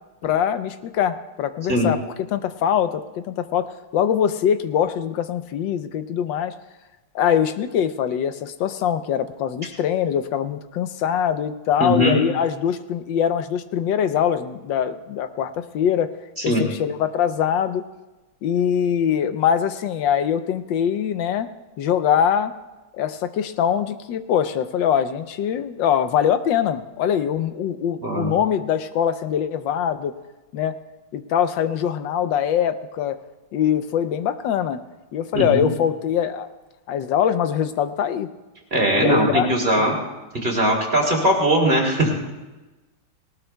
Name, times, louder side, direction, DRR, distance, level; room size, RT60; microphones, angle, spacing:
voice 1, 0.2-2.0 2.3-6.5 7.1-16.1 16.4-17.8 18.4-21.5 21.8-22.5 23.0-30.1 30.5-30.8 31.1-33.2 33.5-34.8 35.1-36.5 36.9-38.3 38.9-39.5, left 9 dB, 85° left, 10 dB, 1.4 m, -23 dB
voice 2, 11.8-12.2 16.5-16.6 28.0-28.3 35.3-35.7 38.7-39.9 40.4-42.3, right 1 dB, 30° right, -1 dB, 2.8 m, -20 dB
19.0 x 19.0 x 2.3 m, 1.1 s
omnidirectional pair, 2.0 m